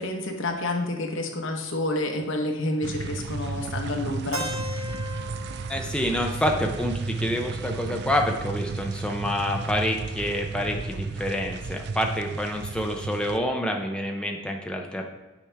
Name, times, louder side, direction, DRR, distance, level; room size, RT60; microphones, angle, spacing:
voice 1, 0.0-4.5, left 1 dB, 65° left, 3 dB, 1.1 m, -29 dB
sound 1, 2.8-13.4, right 4 dB, 55° right, 0.4 m, -33 dB
Keyboard (musical), 4.3-8.2, left 1 dB, 80° right, 1.1 m, -39 dB
voice 2, 5.7-15.0, left 1 dB, 5° left, 1 dB, 0.5 m, -27 dB
8.6 x 5.0 x 3.4 m, 1.2 s
head